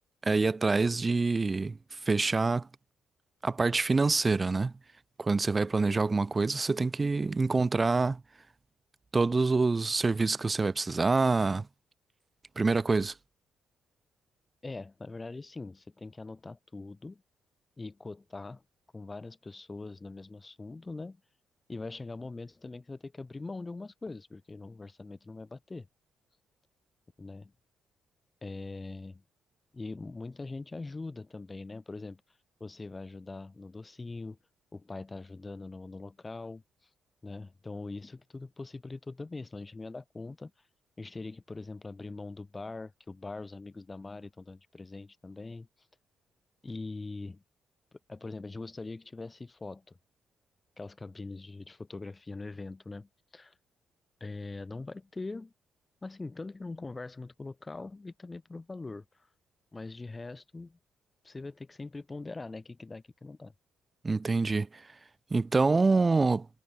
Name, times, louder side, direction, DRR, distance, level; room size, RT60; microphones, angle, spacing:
voice 1, 0.2-1.8 2.1-2.7 3.4-4.7 5.2-8.2 9.1-11.7 12.6-13.1 64.0-64.8 65.3-66.5, right 3 dB, 25° right, 0.8 m, -26 dB
voice 2, 14.6-17.2 17.8-18.6 18.9-21.2 21.7-25.9 27.2-27.5 28.4-29.2 29.7-32.2 32.6-34.4 34.7-36.6 37.2-40.5 41.0-45.7 46.6-47.4 48.1-50.0 50.8-53.5 54.2-55.5 56.0-59.0 59.7-60.8 61.2-63.5, left 3 dB, 20° left, 0.9 m, -42 dB
cardioid pair, 90°, 0 cm